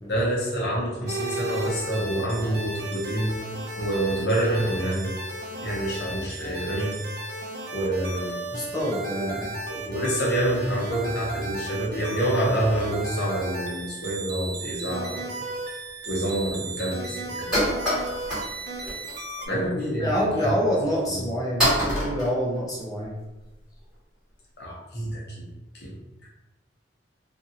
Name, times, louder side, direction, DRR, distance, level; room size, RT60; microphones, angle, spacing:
voice 1, 0.1-3.3 3.8-5.1 5.6-7.0 7.7-8.4 9.1-9.3 9.6-15.3 16.1-17.5 19.5-20.5 21.1-21.2 24.6-25.5 25.7-26.0 26.2-26.3, right 1 dB, 60° left, -5 dB, 0.9 m, -27 dB
sound 1, 1.1-19.5, right 2 dB, 55° right, 0.6 m, -35 dB
voice 2, 8.5-9.5 20.0-23.1, equal, 20° left, -4 dB, 0.5 m, -27 dB
sound 2, 15.5-15.6 16.1-16.2 16.5-16.6 16.9-17.0 17.3-18.5 18.8-19.2 19.6-19.7 20.5-20.6 21.1-21.2 21.6-23.1, equal, 5° right, 1.3 m, -25 dB
2.6 x 2.5 x 2.8 m, 1.1 s
head